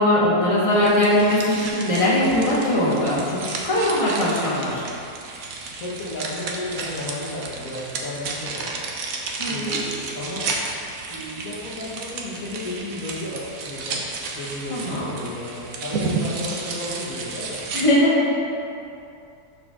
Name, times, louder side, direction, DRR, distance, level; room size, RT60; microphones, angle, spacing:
voice 1, 0.0-4.8 9.4-9.8 14.7-15.1 17.7-18.3, left 1 dB, 20° left, -7 dB, 1.6 m, -20 dB
sound 1, 0.7-17.8, right 3 dB, 70° right, 1.3 m, -32 dB
voice 2, 5.8-8.7 9.4-10.5 11.1-14.0 14.3-17.6, left 1 dB, 65° left, -6 dB, 1.7 m, -33 dB
12.5 x 4.7 x 3.7 m, 2.6 s
omnidirectional pair, 1.6 m